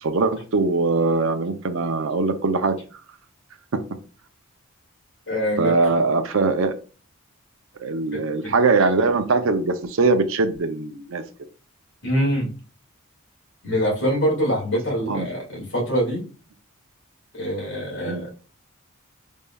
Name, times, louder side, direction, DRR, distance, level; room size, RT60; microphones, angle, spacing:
voice 1, 0.0-2.7 5.6-6.7 7.8-11.2 15.1-15.3 18.0-18.2, right 3 dB, 65° right, 8 dB, 0.5 m, -21 dB
voice 2, 5.3-6.0 8.1-8.5 12.0-12.5 13.6-16.3 17.3-18.3, equal, 60° left, -1 dB, 2.0 m, -24 dB
5.2 x 3.5 x 2.3 m, 0.37 s
head